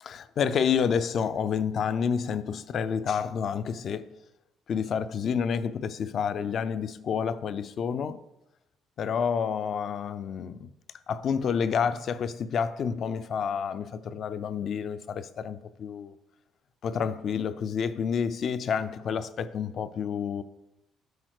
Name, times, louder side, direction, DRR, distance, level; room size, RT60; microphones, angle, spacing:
voice 1, 0.0-4.2 4.7-8.2 9.0-10.7 11.1-16.1 16.8-20.4, left 7 dB, 45° left, 0.4 m, -29 dB
7.8 x 4.3 x 6.4 m
cardioid pair, 155°, 0 cm